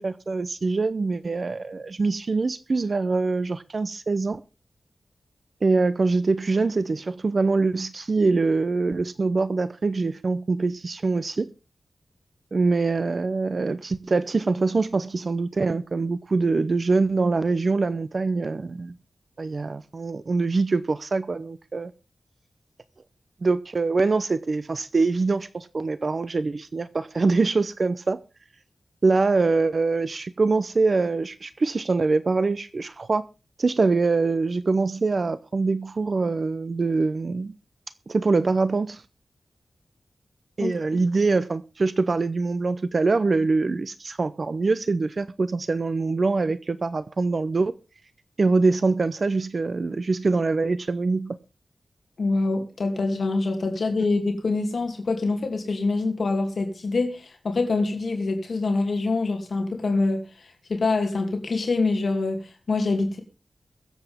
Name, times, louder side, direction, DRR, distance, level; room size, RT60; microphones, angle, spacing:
voice 1, 0.0-4.4 5.6-11.5 12.5-18.9 19.4-21.9 23.4-28.2 29.0-33.2 33.6-37.5 38.1-39.0 40.6-47.7 48.4-51.4, right 3 dB, 50° right, 0.6 m, -24 dB
voice 2, 40.6-41.0 52.2-63.2, left 3 dB, 65° left, 2.6 m, -25 dB
22.5 x 8.0 x 3.5 m
wide cardioid pair, 105°, 0 cm